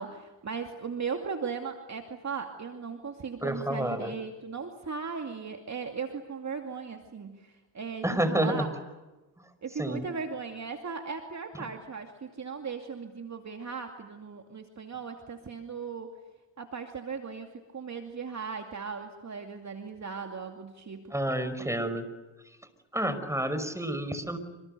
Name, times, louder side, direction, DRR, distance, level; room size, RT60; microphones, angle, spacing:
voice 1, 0.0-8.7 9.6-16.1 16.6-21.1, right 5 dB, 35° right, 4 dB, 2.6 m, -37 dB
voice 2, 3.4-4.1 8.0-8.7 9.4-9.5 9.8-10.1 11.5-11.7 21.1-22.1 22.9-24.4, right 1 dB, 5° right, 11 dB, 5.5 m, -29 dB
28.5 x 27.0 x 6.8 m, 1.1 s
hypercardioid pair, 60°, 49 cm